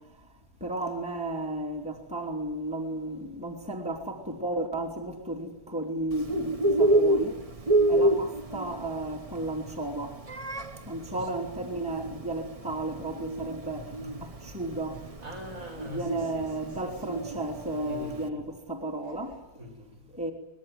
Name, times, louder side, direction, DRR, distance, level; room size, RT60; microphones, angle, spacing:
voice 1, 0.6-7.4 7.9-10.2 10.8-13.9 14.2-15.0 15.9-19.4 20.1-20.3, right 2 dB, 5° right, 2 dB, 3.1 m, -33 dB
Bird, 6.1-18.3, right 1 dB, 30° right, 0.7 m, -28 dB
voice 2, 13.7-14.1 15.2-16.9 17.8-18.5 19.6-20.0, left 2 dB, 55° right, 2 dB, 6.6 m, -43 dB
24.5 x 21.0 x 9.4 m, 0.95 s
omnidirectional pair, 1.7 m